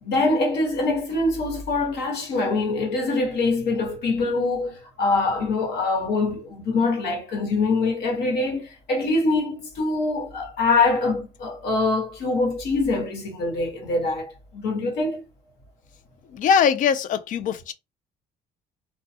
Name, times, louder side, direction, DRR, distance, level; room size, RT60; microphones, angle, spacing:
voice 1, 0.0-15.2, left 3 dB, 70° left, 1.2 m, -24 dB
voice 2, 16.3-17.7, left 7 dB, 50° left, 0.4 m, -21 dB
2.2 x 2.2 x 2.7 m
cardioid pair, 110°, 17 cm